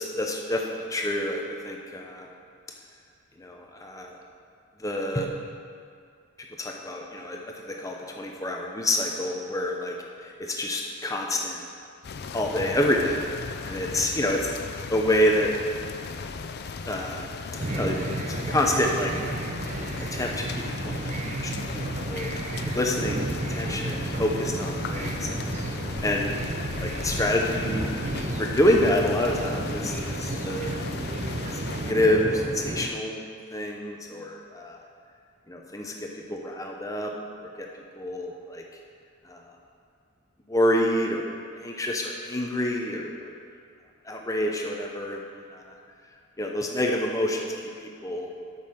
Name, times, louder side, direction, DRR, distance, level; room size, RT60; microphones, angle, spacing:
voice 1, 0.0-2.3 3.4-4.1 4.8-5.3 6.6-9.9 10.6-11.7 12.3-13.3 13.7-14.6 14.9-15.5 16.9-17.3 17.7-19.1 20.1-21.8 22.1-22.3 22.7-26.3 26.8-27.9 28.4-30.7 31.8-33.2 33.5-34.8 35.5-37.1 37.6-37.7 37.9-38.6 39.3-39.4 40.5-42.0 42.3-43.3 44.1-45.2 45.5-45.7 46.4-47.5 48.0-48.3, left 1 dB, 15° left, 1 dB, 0.8 m, -27 dB
sound 1, 12.0-31.9, left 5 dB, 45° left, 0.4 m, -37 dB
sound 2, 17.6-32.9, right 2 dB, 30° right, 0.5 m, -32 dB
8.6 x 5.6 x 6.4 m, 2.3 s
head